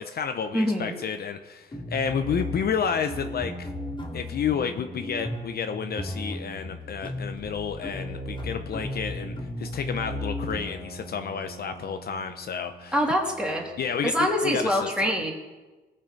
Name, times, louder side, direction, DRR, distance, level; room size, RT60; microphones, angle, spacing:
voice 1, 0.0-3.7 4.1-12.9 13.8-15.1, left 7 dB, 50° left, 7 dB, 0.8 m, -31 dB
voice 2, 0.5-0.9 12.9-13.7 14.0-15.3, equal, 5° right, -1 dB, 3.1 m, -25 dB
sound 1, 1.7-14.5, left 1 dB, 25° left, 2.8 m, -36 dB
19.0 x 6.7 x 5.3 m, 1.2 s
cardioid pair, 90°, 20 cm